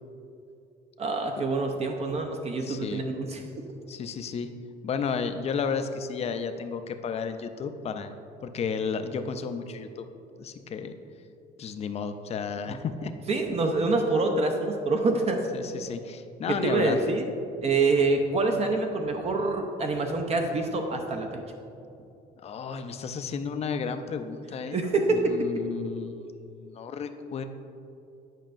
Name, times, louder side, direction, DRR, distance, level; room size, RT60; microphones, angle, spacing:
voice 1, 1.0-3.4 12.7-12.8 13.3-15.4 16.5-17.2 17.6-21.4 24.7-25.4, right 3 dB, 40° right, 4 dB, 0.6 m, -26 dB
voice 2, 2.6-3.1 3.9-4.5 4.8-8.1 8.4-10.0 10.4-10.9 11.6-13.1 13.8-13.9 15.5-17.0 22.4-24.8 25.1-27.4, left 6 dB, 40° left, 8 dB, 0.4 m, -32 dB
9.0 x 5.2 x 2.5 m, 2.6 s
cardioid pair, 110°, 17 cm